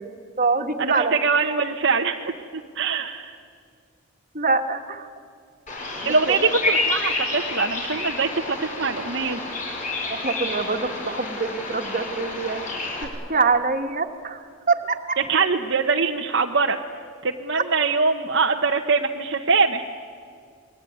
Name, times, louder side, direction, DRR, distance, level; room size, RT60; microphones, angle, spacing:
voice 1, 0.0-1.2 4.3-5.1 6.0-6.5 10.1-12.6 13.0-15.2 17.5-17.6, right 4 dB, 35° right, 6 dB, 1.7 m, -25 dB
voice 2, 0.8-2.3 2.7-3.4 6.0-9.4 15.3-16.8 17.2-19.8, right 4 dB, 55° right, 2 dB, 1.0 m, -23 dB
Bird vocalization bird call bird song, 5.7-13.0, left 2 dB, 35° left, 5.7 m, -29 dB
29.5 x 21.5 x 9.5 m, 2.2 s
head